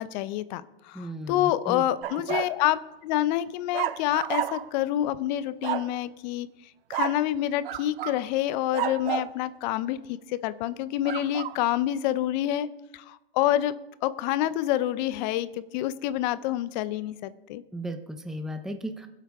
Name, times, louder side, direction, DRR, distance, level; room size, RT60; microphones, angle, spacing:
voice 1, 0.0-6.5 6.9-12.7 12.9-13.7 14.0-17.6, left 13 dB, 45° left, 15 dB, 0.7 m, -27 dB
voice 2, 0.9-1.8 17.7-19.1, equal, ahead, 5 dB, 0.8 m, -35 dB
sound 1, 2.0-2.6 3.7-4.8 5.6-5.9 6.9-7.3 7.6-8.2 8.7-9.3 11.0-11.6, right 13 dB, 65° right, 0.7 m, -31 dB
21.5 x 8.2 x 3.6 m, 1.0 s
hypercardioid pair, 110°, 31 cm